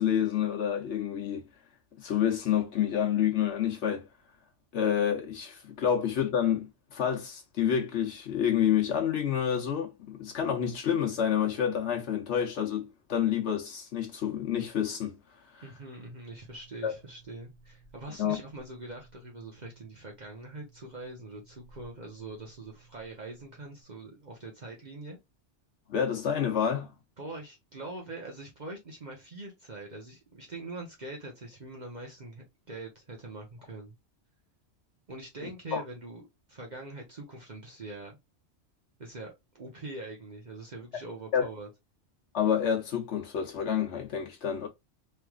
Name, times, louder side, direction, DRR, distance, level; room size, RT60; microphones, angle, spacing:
voice 1, 0.0-1.5 2.0-4.1 4.7-15.2 15.5-15.6 16.8-16.9 18.2-18.4 25.9-26.9 35.7-35.8 41.3-41.5 42.3-44.7, left 9 dB, 80° left, 1.1 m, -28 dB
voice 2, 15.6-25.2 27.2-33.9 35.1-38.2 39.0-41.7, right 2 dB, 45° right, 0.9 m, -43 dB
sound 1, 16.3-23.8, right 4 dB, 70° right, 1.6 m, -59 dB
3.2 x 3.0 x 2.3 m
omnidirectional pair, 1.2 m